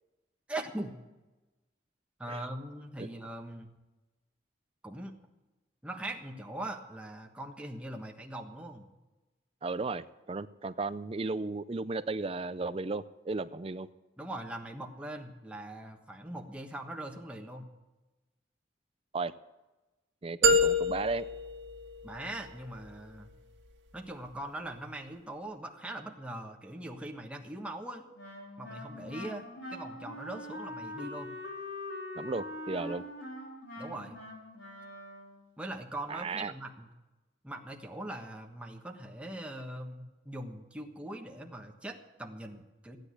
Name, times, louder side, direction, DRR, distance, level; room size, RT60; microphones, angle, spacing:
voice 1, 0.5-1.0 2.2-3.7 4.8-5.1 5.8-8.9 14.2-17.7 22.0-23.3 23.9-28.1 28.6-29.4 29.7-31.3 33.8-34.2 35.6-36.9 37.4-43.0, right 1 dB, 5° right, 2 dB, 1.4 m, -41 dB
voice 2, 9.6-13.9 19.1-19.3 20.2-21.2 32.2-33.0 36.1-36.5, right 3 dB, 30° right, 14 dB, 0.5 m, -35 dB
sound 1, 20.4-22.5, left 1 dB, 85° right, 1.7 m, -27 dB
Wind instrument woodwind instrument, 28.1-35.5, left 1 dB, 85° left, 4.6 m, -43 dB
15.5 x 9.9 x 8.3 m, 1.1 s
head